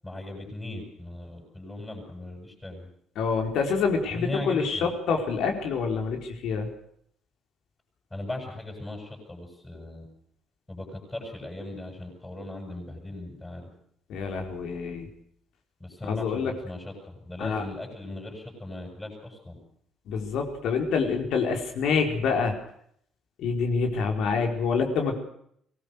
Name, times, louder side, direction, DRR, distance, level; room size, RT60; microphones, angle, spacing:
voice 1, 0.0-2.9 4.1-4.9 8.1-10.1 10.7-13.7 15.8-16.9 17.2-19.6, left 1 dB, 10° left, 1 dB, 7.8 m, -38 dB
voice 2, 3.2-6.7 14.1-15.1 16.1-16.5 17.4-17.6 20.1-22.5 23.4-25.2, left 5 dB, 65° left, 4 dB, 4.6 m, -26 dB
23.5 x 19.5 x 6.7 m, 0.68 s
cardioid pair, 165°, 0 cm